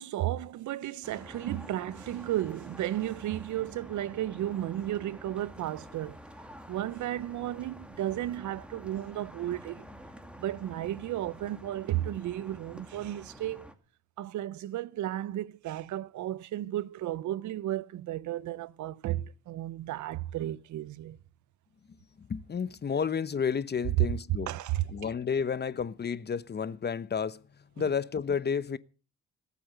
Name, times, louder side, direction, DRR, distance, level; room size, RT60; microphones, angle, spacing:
voice 1, 0.0-6.2 6.7-9.9 10.4-13.7 14.2-21.2 24.5-24.8, right 13 dB, 75° right, 0.7 m, -34 dB
sound 1, 1.0-13.7, equal, 5° right, 2.1 m, -49 dB
voice 2, 22.2-24.5 24.9-27.4 27.8-28.8, left 6 dB, 35° left, 0.9 m, -31 dB
18.5 x 8.5 x 6.7 m
cardioid pair, 90°, 30 cm